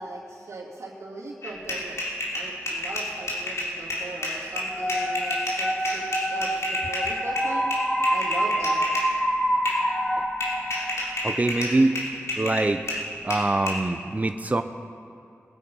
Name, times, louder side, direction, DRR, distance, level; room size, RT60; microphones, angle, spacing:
voice 1, 0.0-2.0 2.3-7.7 8.1-8.8, right 2 dB, 70° right, -5 dB, 2.6 m, -38 dB
sound 1, 1.4-9.1 9.6-9.9 10.4-13.8, left 1 dB, 65° left, 3.5 m, -30 dB
sound 2, 4.7-11.5, equal, 15° left, 2.0 m, -27 dB
voice 2, 10.9-12.0 12.4-14.6, right 2 dB, 30° right, 8 dB, 0.7 m, -24 dB
21.0 x 8.4 x 5.5 m, 2.6 s
cardioid pair, 45°, 5 cm